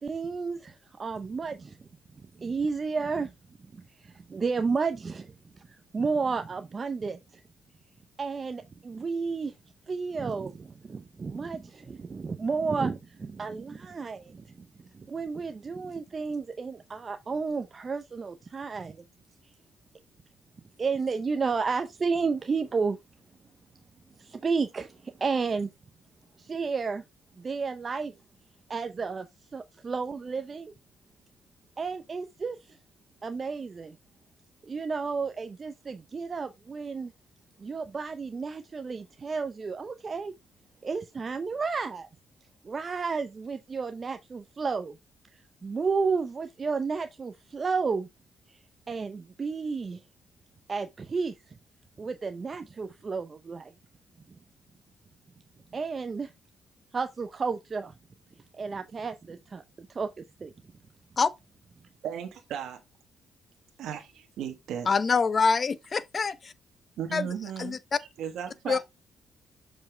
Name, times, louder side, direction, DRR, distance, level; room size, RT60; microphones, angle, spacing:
voice 1, 0.0-1.8 2.4-3.3 3.7-7.4 8.2-9.5 9.9-14.7 14.9-19.0 20.8-23.0 24.2-25.7 26.4-27.0 27.4-28.1 28.7-29.3 29.5-30.7 31.8-32.8 33.2-34.0 34.6-37.1 37.6-40.3 40.8-42.1 42.6-45.0 45.3-48.1 48.5-48.6 48.9-50.0 50.7-51.6 52.0-53.7 55.7-56.3 56.9-57.9 58.6-60.1 60.4-60.5, right 4 dB, 35° right, 0.7 m, -32 dB
voice 2, 62.0-62.8 63.8-64.1 64.4-64.9 67.0-68.8, right 8 dB, 75° right, 1.3 m, -36 dB
voice 3, 64.9-66.5 67.1-67.3 67.6-68.0 68.7-68.8, left 5 dB, 40° left, 0.7 m, -25 dB
6.9 x 5.3 x 3.3 m
cardioid pair, 90°, 0 cm